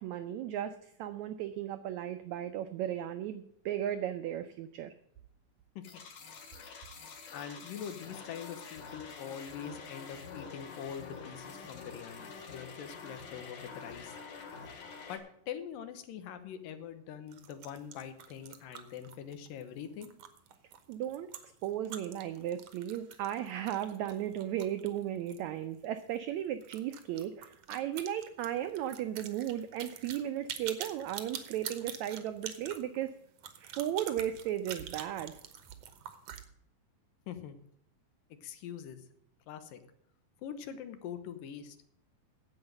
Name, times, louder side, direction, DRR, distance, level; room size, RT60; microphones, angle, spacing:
voice 1, 0.0-4.9 20.9-21.3 21.6-33.1 33.6-35.4, right 11 dB, 85° right, 10 dB, 1.6 m, -35 dB
sound 1, 5.8-15.2, left 5 dB, 65° left, 3.2 m, -47 dB
voice 2, 7.3-14.2 15.1-20.1 37.3-37.6 38.4-39.0 39.5-39.8 40.4-41.8, left 8 dB, 85° left, 10 dB, 2.7 m, -43 dB
sound 2, 17.3-25.5 25.7-25.8 26.1-26.2 26.6-36.4, right 9 dB, 65° right, 1.6 m, -46 dB
9.6 x 8.0 x 7.6 m, 0.72 s
omnidirectional pair, 3.9 m